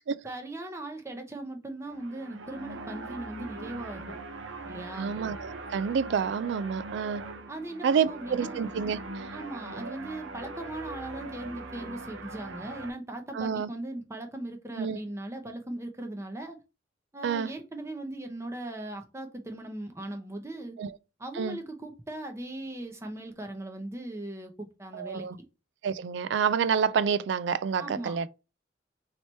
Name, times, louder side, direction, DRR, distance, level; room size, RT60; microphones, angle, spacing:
voice 1, 0.2-4.2 4.6-5.2 7.5-8.6 9.3-16.6 17.1-20.8 21.2-25.3 27.8-28.2, right 1 dB, 15° right, 0.6 m, -39 dB
sound 1, 1.8-12.9, right 3 dB, 85° right, 0.7 m, -41 dB
voice 2, 5.0-7.3 7.8-9.3 13.3-13.7 14.8-15.0 17.2-17.5 20.8-21.0 21.3-21.6 24.9-25.4 25.8-28.3, right 6 dB, 65° right, 0.3 m, -28 dB
3.2 x 2.9 x 4.2 m
head